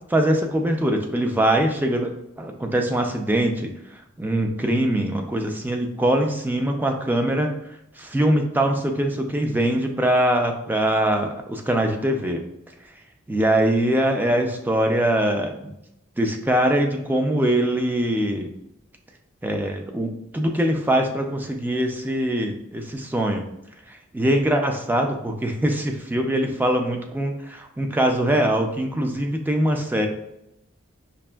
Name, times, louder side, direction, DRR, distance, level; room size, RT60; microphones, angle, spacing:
voice 1, 0.1-3.7 4.2-7.5 8.0-12.4 13.3-15.7 16.2-18.5 19.4-23.4 24.1-30.1, right 1 dB, 10° right, 3 dB, 0.3 m, -22 dB
5.1 x 2.4 x 2.2 m, 0.81 s
head